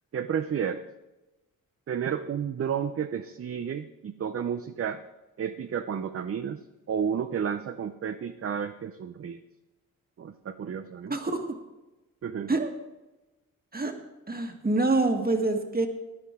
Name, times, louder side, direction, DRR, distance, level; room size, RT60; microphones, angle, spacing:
voice 1, 0.1-0.8 1.9-5.0 5.4-9.4 10.2-11.2 12.2-12.5, right 7 dB, 40° right, 8 dB, 0.6 m, -31 dB
voice 2, 11.0-11.6 12.5-12.7 13.7-14.0 14.3-15.9, right 2 dB, 25° right, 5 dB, 1.7 m, -26 dB
15.5 x 9.7 x 3.7 m, 1.1 s
cardioid pair, 65°, 35 cm